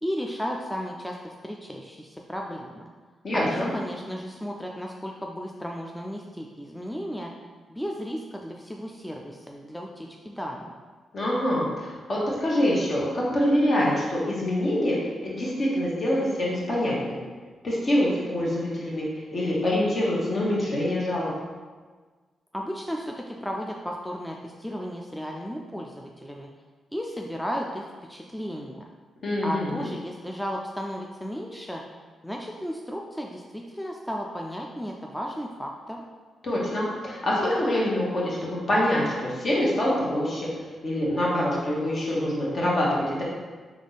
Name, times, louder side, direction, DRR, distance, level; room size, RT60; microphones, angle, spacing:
voice 1, 0.0-2.9 3.3-7.3 7.7-10.7 22.5-26.5 26.9-28.8 29.4-31.8 32.2-36.0, equal, 5° left, 0 dB, 0.4 m, -34 dB
voice 2, 3.2-3.7 11.1-17.2 17.6-21.3 29.2-29.9 36.4-40.5 40.8-43.2, left 1 dB, 50° left, -5 dB, 1.3 m, -25 dB
3.6 x 3.0 x 4.0 m, 1.4 s
cardioid pair, 65°, 0 cm